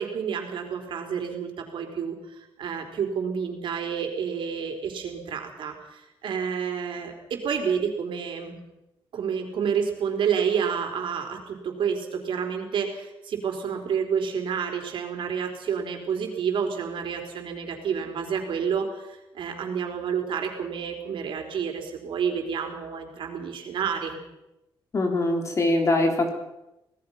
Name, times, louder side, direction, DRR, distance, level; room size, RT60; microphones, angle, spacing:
voice 1, 0.0-8.6 9.1-24.2, right 7 dB, 65° right, 3 dB, 4.3 m, -29 dB
voice 2, 24.9-26.3, left 2 dB, 35° left, 4 dB, 3.7 m, -22 dB
25.5 x 18.5 x 5.9 m, 0.92 s
cardioid pair, 145°, 9 cm